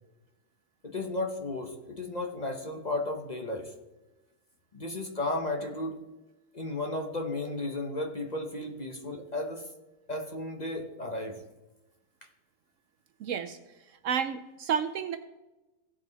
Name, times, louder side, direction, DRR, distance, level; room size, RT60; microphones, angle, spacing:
voice 1, 0.8-3.7 4.7-6.0 6.5-9.7 10.1-11.4, left 2 dB, 35° left, 3 dB, 0.9 m, -34 dB
voice 2, 13.2-13.6 13.9-15.2, right 7 dB, 70° right, 10 dB, 0.8 m, -31 dB
16.5 x 5.5 x 4.0 m, 1.1 s
omnidirectional pair, 1.6 m